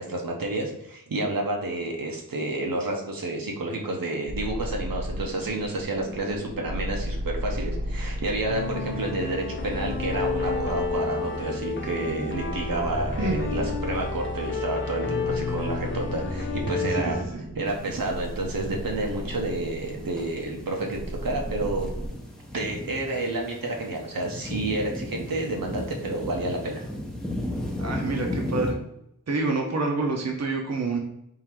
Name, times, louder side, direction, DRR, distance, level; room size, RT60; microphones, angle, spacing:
voice 1, 0.0-17.2 17.6-21.9 22.5-26.8, right 2 dB, 75° right, 0 dB, 0.9 m, -30 dB
sound 1, 4.3-22.1, equal, 30° right, 1.1 m, -36 dB
sound 2, 8.5-17.3, left 4 dB, 35° left, 0.7 m, -30 dB
voice 2, 13.2-13.7 16.9-17.4 27.8-28.8 29.3-31.0, right 3 dB, 50° right, 1 dB, 0.8 m, -28 dB
sound 3, 17.6-28.7, left 1 dB, ahead, 0.8 m, -35 dB
3.8 x 2.8 x 4.4 m, 0.79 s
wide cardioid pair, 95°, 34 cm